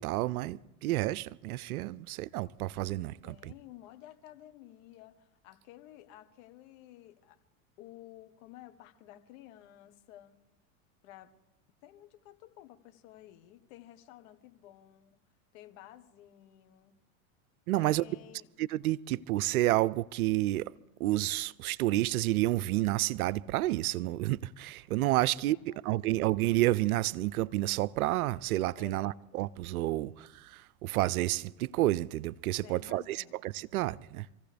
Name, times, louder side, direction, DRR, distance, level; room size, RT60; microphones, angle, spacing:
voice 1, 0.0-3.5 17.7-18.0 18.6-20.7 21.0-34.3, right 16 dB, 80° right, 0.6 m, -30 dB
voice 2, 2.8-7.4 7.8-10.4 11.0-11.3 11.8-15.2 15.5-16.9 17.7-18.5 25.2-25.8 28.8-29.2 32.6-33.3, left 13 dB, 60° left, 1.5 m, -53 dB
26.5 x 15.5 x 3.4 m
hypercardioid pair, 100°, 43 cm